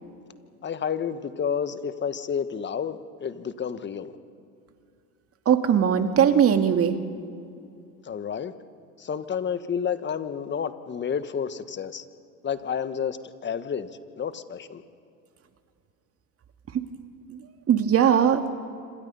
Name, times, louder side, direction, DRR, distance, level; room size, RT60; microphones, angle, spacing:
voice 1, 0.6-4.1 8.0-8.5 9.0-12.0 12.4-13.2 13.4-13.9 14.2-14.8, left 7 dB, 25° left, 11 dB, 1.4 m, -30 dB
voice 2, 5.5-7.0 17.3-17.4 17.7-18.5, right 8 dB, 35° right, 7 dB, 2.1 m, -20 dB
27.0 x 26.0 x 5.6 m, 2.5 s
hypercardioid pair, 100°, 43 cm